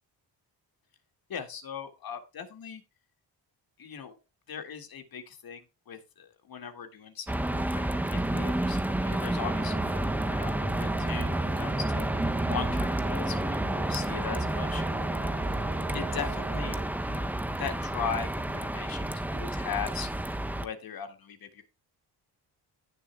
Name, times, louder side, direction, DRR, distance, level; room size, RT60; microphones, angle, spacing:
voice 1, 1.3-2.8 3.8-4.2 4.5-14.8 15.2-15.4 15.9-17.3 17.6-20.3 20.6-21.6, left 7 dB, 55° left, 6 dB, 2.0 m, -39 dB
sound 1, 7.3-20.7, right 1 dB, 5° right, 0.5 m, -30 dB
sound 2, 9.4-17.1, right 11 dB, 65° right, 1.0 m, -44 dB
17.0 x 6.8 x 2.2 m, 0.29 s
cardioid pair, 125°, 42 cm